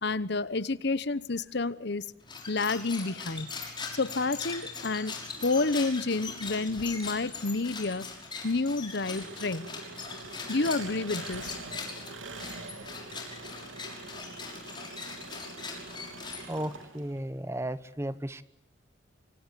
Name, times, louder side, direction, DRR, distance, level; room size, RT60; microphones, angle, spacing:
voice 1, 0.0-2.0 2.5-3.5 3.9-8.1 8.4-9.7 10.5-11.6, left 3 dB, 60° left, 17 dB, 1.0 m, -29 dB
sound 1, 2.2-16.8, left 4 dB, 25° left, 6.0 m, -41 dB
Engine, 9.1-17.2, right 3 dB, 80° right, 3.4 m, -44 dB
voice 2, 16.5-18.4, right 1 dB, 15° right, 15 dB, 0.9 m, -34 dB
25.5 x 24.5 x 8.4 m, 0.83 s
head